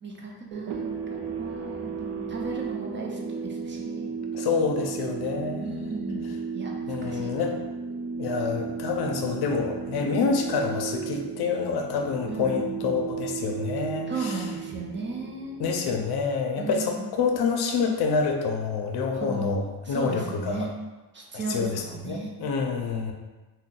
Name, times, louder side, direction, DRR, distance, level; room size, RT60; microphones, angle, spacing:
voice 1, 0.0-4.2 5.6-7.5 10.0-10.3 12.3-13.0 14.1-15.7 16.6-17.1 19.1-20.7 21.1-22.3, right 3 dB, 30° right, -1 dB, 0.5 m, -36 dB
sound 1, 0.5-16.8, right 6 dB, 75° right, 0.5 m, -35 dB
voice 2, 4.3-5.9 6.9-7.6 8.2-14.4 15.6-19.6 19.9-20.7 21.3-23.1, left 5 dB, 70° left, 2 dB, 0.5 m, -27 dB
2.6 x 2.2 x 3.7 m, 1.2 s
cardioid pair, 115°, 40 cm